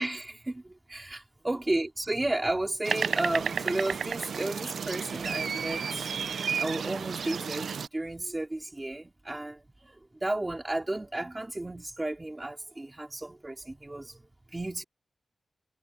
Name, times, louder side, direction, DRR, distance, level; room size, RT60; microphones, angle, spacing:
voice 1, 0.0-6.1 6.6-14.8, right 2 dB, 15° right, 2.8 m, -33 dB
sound 1, 2.8-7.9, right 6 dB, 80° right, 0.3 m, -32 dB
wide cardioid pair, 160°, 0 cm